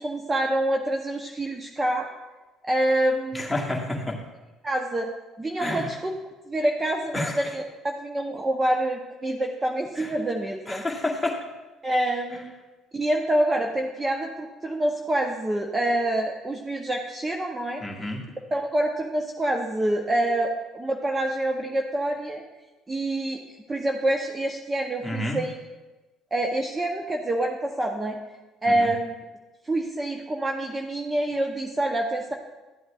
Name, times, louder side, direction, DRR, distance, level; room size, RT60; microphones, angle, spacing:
voice 1, 0.0-2.1 2.6-3.5 4.6-5.1 5.4-6.1 6.5-10.8 11.8-12.5 12.9-17.8 18.5-22.4 22.9-23.4 23.7-25.6 26.3-28.2 28.6-29.1 29.6-32.3, right 1 dB, 20° right, 2 dB, 0.7 m, -26 dB
voice 2, 3.3-4.2 5.6-5.9 7.1-7.4 10.0-10.1 10.7-11.4 17.8-18.2 25.0-25.4 28.7-28.9, left 1 dB, 5° left, -3 dB, 1.8 m, -29 dB
13.0 x 7.8 x 2.4 m, 1.2 s
supercardioid pair, 75°, 0 cm